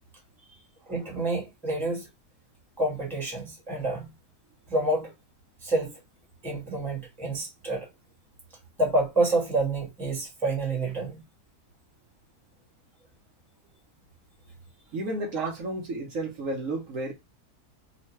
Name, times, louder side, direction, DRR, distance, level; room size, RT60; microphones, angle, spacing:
voice 1, 0.9-2.1 2.8-4.1 4.7-5.1 5.6-5.9 6.4-7.9 8.8-11.2 15.4-15.5, right 2 dB, ahead, 0.9 m, -28 dB
voice 2, 14.9-17.1, right 2 dB, 60° right, 1.0 m, -32 dB
3.1 x 2.2 x 2.9 m
omnidirectional pair, 1.7 m